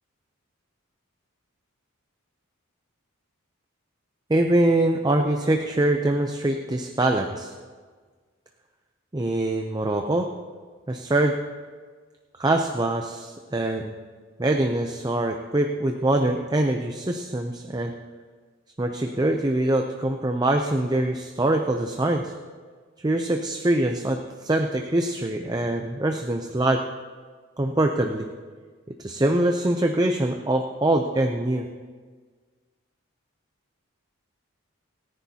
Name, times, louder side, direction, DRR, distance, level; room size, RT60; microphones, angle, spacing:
voice 1, 4.3-7.5 9.1-10.3 10.9-11.3 12.4-13.9 14.4-17.9 18.8-22.3 23.0-26.8 27.6-28.3 29.0-31.7, right 1 dB, 20° right, 3 dB, 0.5 m, -24 dB
28.0 x 10.0 x 2.9 m, 1.5 s
head